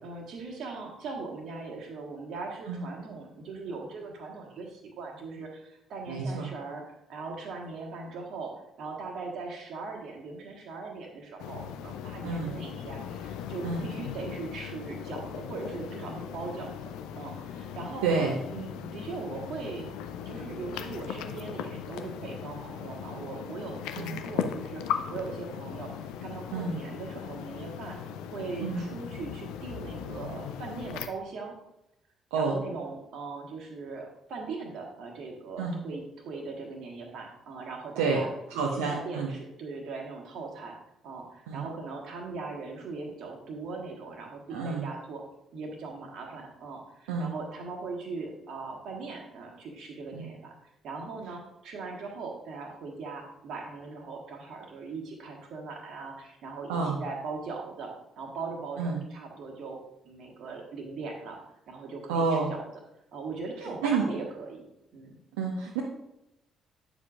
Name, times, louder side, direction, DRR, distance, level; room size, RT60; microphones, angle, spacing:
voice 1, 0.0-8.5 8.8-16.7 17.1-18.1 18.5-19.9 20.2-24.8 25.1-31.5 32.3-38.3 38.5-40.8 41.0-45.2 45.5-50.5 50.8-59.8 60.0-61.4 61.7-62.6 63.1-65.1, right 4 dB, 55° right, 1 dB, 1.5 m, -40 dB
voice 2, 6.1-6.5 12.2-12.5 13.6-13.8 18.0-18.3 24.0-24.2 26.5-26.8 28.6-28.8 32.3-32.6 35.6-35.8 38.0-38.2 38.5-39.3 41.5-41.7 44.5-44.9 47.1-47.3 50.1-50.3 56.7-57.0 58.8-59.0 62.1-62.5 63.8-64.1 65.4-65.8, right 4 dB, 70° right, -1 dB, 0.7 m, -29 dB
sound 1, 11.4-31.1, left 8 dB, 65° left, 0.4 m, -38 dB
9.5 x 7.1 x 2.5 m, 0.88 s
figure-of-eight pair, 45°, 0 cm